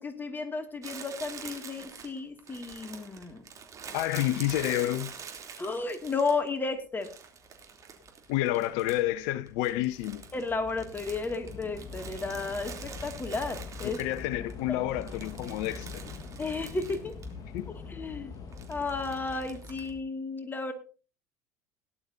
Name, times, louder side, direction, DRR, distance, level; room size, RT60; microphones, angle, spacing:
voice 1, 0.0-3.4 5.6-7.1 10.3-14.0 14.7-14.8 16.4-17.2 17.9-18.3 18.7-20.7, left 3 dB, 20° left, 2.4 m, -33 dB
Crumpling crinkling, 0.8-6.6 7.0-9.2 9.5-14.5 14.9-17.3 17.6-17.7 18.5-19.9, right 6 dB, 35° right, 3.2 m, -45 dB
voice 2, 3.9-5.2 8.3-10.2 13.8-16.0 17.5-17.7, left 15 dB, 60° left, 0.7 m, -29 dB
Train / Subway metro underground, 6.0-6.1 6.9-7.2 7.4-20.0, left 4 dB, 40° left, 1.6 m, -44 dB
17.5 x 11.0 x 2.8 m
figure-of-eight pair, 70°, 9 cm